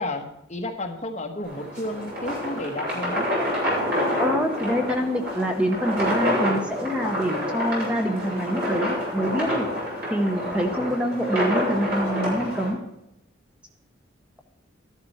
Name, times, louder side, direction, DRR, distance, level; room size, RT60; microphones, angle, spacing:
voice 1, 0.0-3.3 10.8-11.0, left 2 dB, 35° left, 4 dB, 1.2 m, -32 dB
sound 1, 1.4-12.7, equal, 55° right, 6.1 m, -27 dB
voice 2, 4.2-9.7 10.1-12.8, equal, 5° right, 3 dB, 1.0 m, -25 dB
12.5 x 11.5 x 4.2 m, 0.86 s
head